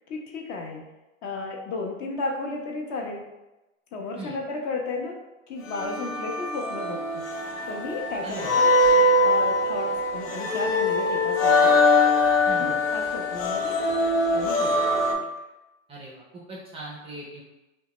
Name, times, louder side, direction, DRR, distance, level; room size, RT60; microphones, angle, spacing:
voice 1, 0.1-0.8 1.2-3.2 3.9-5.2 5.5-7.2 7.7-8.7 9.2-11.8 12.6-13.8 14.3-14.7 15.0-15.1, left 3 dB, 40° left, 1 dB, 0.5 m, -33 dB
sound 1, 5.7-15.1, left 2 dB, 80° left, 0.7 m, -22 dB
voice 2, 8.2-8.6 12.4-12.8 15.9-17.4, right 2 dB, 15° right, -4 dB, 0.4 m, -39 dB
2.7 x 2.1 x 2.9 m, 1.0 s
hypercardioid pair, 110°, 39 cm